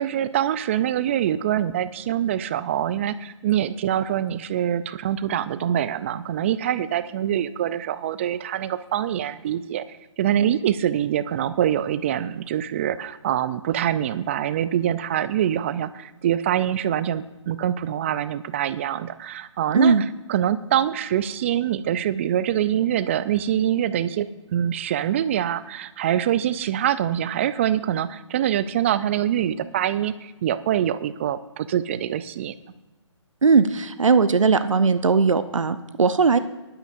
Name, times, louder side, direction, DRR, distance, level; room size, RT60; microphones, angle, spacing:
voice 1, 0.0-9.8 10.2-20.0 20.3-32.5, right 10 dB, 25° right, 15 dB, 0.3 m, -24 dB
voice 2, 33.4-36.4, right 5 dB, 85° right, 12 dB, 0.7 m, -18 dB
18.5 x 11.5 x 2.6 m, 1.1 s
figure-of-eight pair, 145°, 16 cm